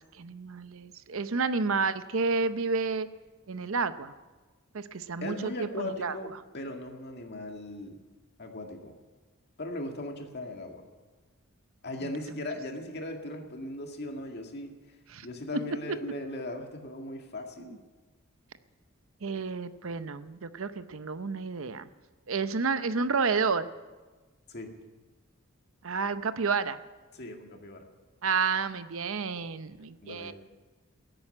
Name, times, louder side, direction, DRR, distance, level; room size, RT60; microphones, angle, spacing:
voice 1, 0.0-3.1 3.5-4.1 4.7-6.2 12.0-12.1 12.4-12.5 15.1-15.3 15.5-16.0 17.6-17.8 19.2-21.9 22.3-23.7 25.8-26.8 28.2-30.3, right 4 dB, 60° right, 12 dB, 0.7 m, -30 dB
voice 2, 5.2-8.0 8.4-8.9 9.6-10.8 11.8-14.7 15.2-17.8 24.5-24.7 27.1-27.8 30.0-30.3, left 1 dB, 50° left, 3 dB, 2.0 m, -38 dB
16.5 x 8.9 x 9.9 m, 1.3 s
head